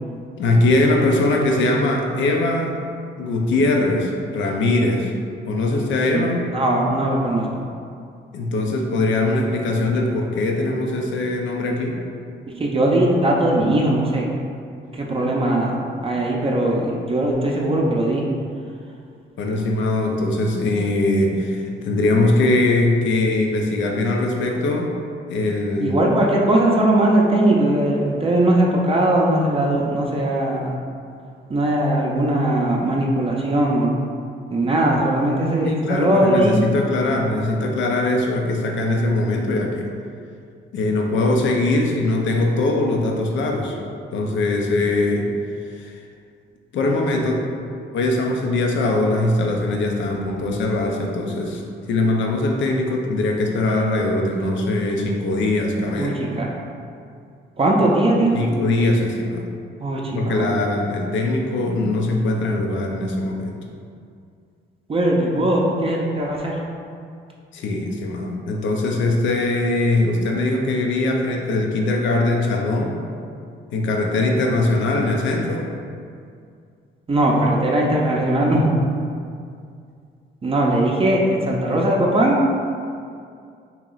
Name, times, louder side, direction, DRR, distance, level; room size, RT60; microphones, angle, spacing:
voice 1, 0.4-2.7 3.2-5.1 5.4-6.4 8.3-12.0 19.4-24.9 25.3-26.0 35.6-39.9 40.7-43.8 44.1-45.3 45.7-46.0 46.7-47.4 47.9-51.6 51.9-56.2 58.3-59.5 60.1-63.6 67.5-73.0 73.7-75.7, left 2 dB, 70° left, 1 dB, 0.6 m, -21 dB
voice 2, 6.1-7.6 12.5-14.2 14.9-18.2 25.8-30.7 31.5-34.0 34.5-36.6 56.0-56.5 57.6-58.5 59.8-60.6 64.9-66.6 77.1-78.7 80.4-82.4, right 1 dB, 30° right, -2 dB, 0.5 m, -19 dB
3.0 x 2.9 x 3.8 m, 2.3 s
cardioid pair, 90°, 20 cm